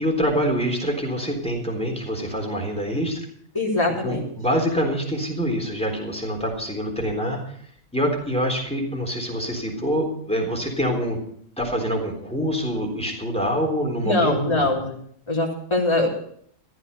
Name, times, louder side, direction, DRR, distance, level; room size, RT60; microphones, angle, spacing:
voice 1, 0.0-3.2 4.0-7.4 7.9-11.2 11.6-14.7, equal, 5° left, 1 dB, 3.7 m, -25 dB
voice 2, 3.5-4.3 14.0-14.9 15.3-16.1, left 2 dB, 20° left, -3 dB, 3.3 m, -22 dB
14.5 x 13.0 x 5.4 m, 0.62 s
omnidirectional pair, 1.4 m